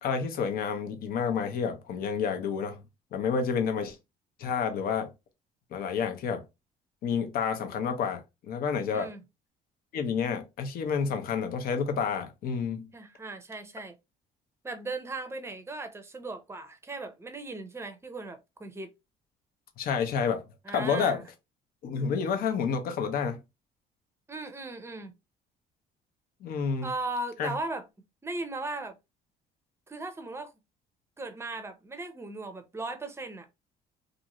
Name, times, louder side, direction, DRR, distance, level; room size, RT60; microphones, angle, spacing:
voice 1, 0.0-2.8 3.1-4.0 4.4-5.1 5.7-6.4 7.0-8.2 8.5-9.1 9.9-12.9 19.8-20.4 20.7-21.2 21.8-23.4 26.4-26.9 27.4-27.5, left 6 dB, 60° left, 0.7 m, -29 dB
voice 2, 8.9-9.2 12.9-13.9 14.6-18.9 20.6-21.3 24.3-25.1 26.8-27.9 28.2-28.9 29.9-30.5 31.2-33.5, right 2 dB, 15° right, 0.6 m, -37 dB
2.6 x 2.5 x 2.9 m
cardioid pair, 110°, 17 cm